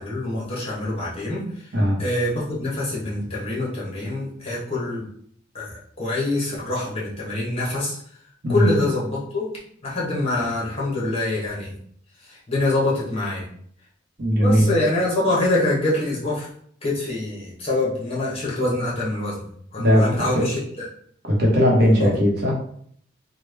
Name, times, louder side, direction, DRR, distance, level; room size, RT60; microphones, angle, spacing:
voice 1, 0.0-1.4 2.0-5.0 5.5-8.0 8.5-9.5 9.8-11.7 12.5-13.5 14.4-16.5 16.8-20.9 22.0-22.1, left 2 dB, 30° left, -5 dB, 1.0 m, -25 dB
voice 2, 14.2-14.7 19.8-20.5 21.2-22.5, equal, 55° right, -2 dB, 0.8 m, -18 dB
3.3 x 2.2 x 3.3 m, 0.63 s
head